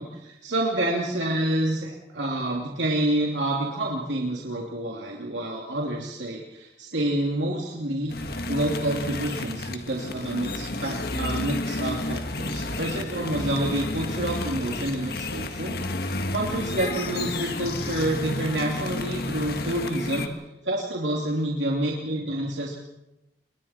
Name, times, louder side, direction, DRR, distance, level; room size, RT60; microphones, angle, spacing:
voice 1, 0.0-15.7 16.3-22.8, right 1 dB, 90° right, -2 dB, 3.0 m, -28 dB
sound 1, 8.1-20.3, left 2 dB, 60° left, 1.7 m, -31 dB
29.0 x 23.5 x 4.5 m, 0.92 s
head